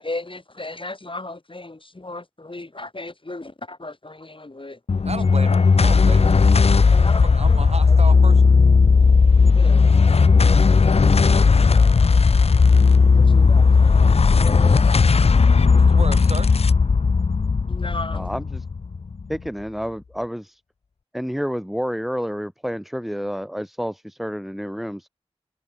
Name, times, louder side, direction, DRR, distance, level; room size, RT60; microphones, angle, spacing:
voice 1, 0.0-4.8 6.9-8.0 9.6-9.9 10.3-11.8 13.1-14.9 17.7-18.3, left 2 dB, 50° left, 3.6 m, -36 dB
sound 1, 4.9-19.5, left 4 dB, 65° left, 0.5 m, -15 dB
voice 2, 5.0-8.5 15.7-16.5, right 3 dB, 70° right, 5.1 m, -34 dB
voice 3, 18.1-18.6 19.3-20.6 21.1-25.1, equal, ahead, 1.1 m, -29 dB
wide cardioid pair, 50°, 11 cm